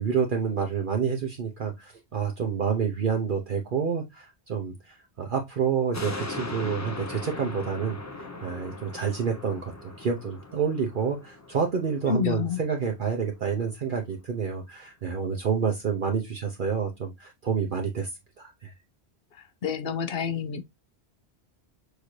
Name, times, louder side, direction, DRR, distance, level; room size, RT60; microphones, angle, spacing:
voice 1, 0.0-18.1 18.4-18.7, right 6 dB, 55° right, 0.8 m, -28 dB
sound 1, 5.9-12.6 13.0-13.1, left 3 dB, 20° left, 0.5 m, -39 dB
voice 2, 12.1-12.6 19.6-20.6, left 6 dB, 60° left, 0.8 m, -28 dB
6.5 x 2.6 x 3.1 m
omnidirectional pair, 1.1 m